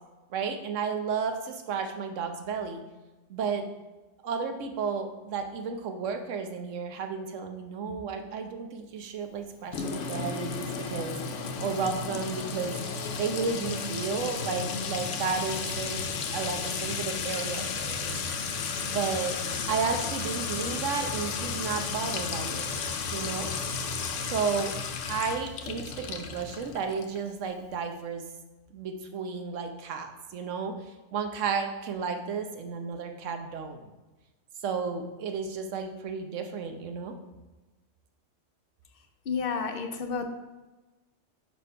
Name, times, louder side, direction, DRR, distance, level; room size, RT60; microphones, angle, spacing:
voice 1, 0.3-2.8 3.3-3.6 4.2-18.2 18.8-19.4 19.7-22.7 23.1-23.5 24.3-24.7 25.1-28.2 28.7-33.9 34.6-37.1, right 5 dB, 80° right, 6 dB, 1.1 m, -33 dB
Sink (filling or washing) / Trickle dribble / Fill (with liquid), 9.7-27.2, left 5 dB, 80° left, 1.0 m, -33 dB
voice 2, 39.3-40.2, left 5 dB, 55° left, 6 dB, 0.8 m, -30 dB
5.2 x 4.4 x 5.4 m, 1.1 s
omnidirectional pair, 1.3 m